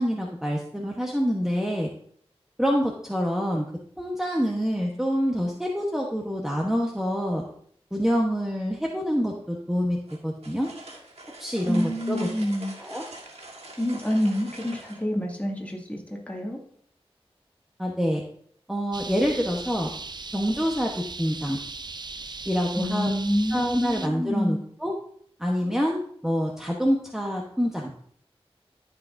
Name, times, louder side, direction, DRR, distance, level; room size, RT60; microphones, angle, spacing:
voice 1, 0.0-1.9 2.6-3.6 4.0-7.4 7.9-10.7 11.4-12.3 12.8-13.0 17.8-18.2 18.7-19.9 20.3-21.6 22.5-23.1 23.5-24.9 25.4-27.9, equal, 5° right, -1 dB, 1.1 m, -26 dB
sound 1, 10.1-15.0, right 2 dB, 85° right, 1.7 m, -44 dB
voice 2, 11.7-12.7 13.8-16.6 22.8-24.6, equal, 15° left, -1 dB, 2.1 m, -27 dB
sound 2, 18.9-24.1, right 3 dB, 45° right, 0.5 m, -38 dB
13.5 x 6.1 x 2.7 m, 0.62 s
wide cardioid pair, 55°, 10 cm